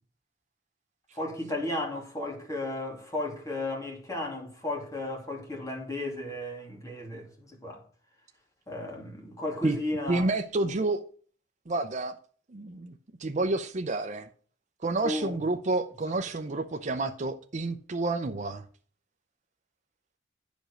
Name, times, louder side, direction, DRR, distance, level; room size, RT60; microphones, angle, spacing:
voice 1, 1.1-7.8 8.7-10.3 10.6-10.7 15.0-15.4, left 1 dB, 20° left, 2.8 m, -34 dB
voice 2, 10.1-11.0 11.7-12.2 12.5-14.3 14.8-18.7, right 2 dB, 40° right, 0.6 m, -29 dB
10.0 x 5.2 x 6.4 m
head